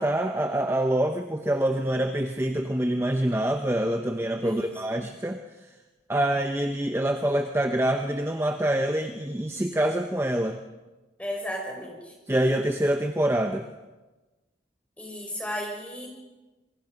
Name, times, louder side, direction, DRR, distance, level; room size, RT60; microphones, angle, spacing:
voice 1, 0.0-5.4 6.1-10.6 12.3-13.7, right 1 dB, 15° right, 5 dB, 0.9 m, -25 dB
voice 2, 4.4-4.7 11.2-12.1 15.0-16.1, equal, 10° left, 0 dB, 5.5 m, -34 dB
26.0 x 22.0 x 5.3 m, 1.2 s
head